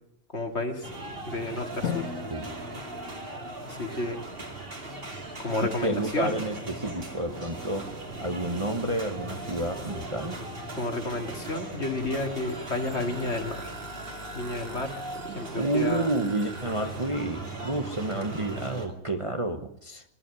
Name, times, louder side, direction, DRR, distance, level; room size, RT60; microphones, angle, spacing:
voice 1, 0.3-0.9 1.2-2.1 3.6-4.2 5.4-6.4 10.8-13.7 14.3-15.0 15.2-16.1, left 2 dB, 50° left, 5 dB, 2.8 m, -31 dB
sound 1, 0.8-18.9, right 2 dB, 40° right, 2.9 m, -38 dB
Drum, 1.8-4.3, left 6 dB, 85° left, 1.8 m, -37 dB
voice 2, 5.8-10.4 15.6-20.0, right 2 dB, 25° right, 6 dB, 1.3 m, -30 dB
22.0 x 12.5 x 9.9 m, 0.72 s
omnidirectional pair, 1.5 m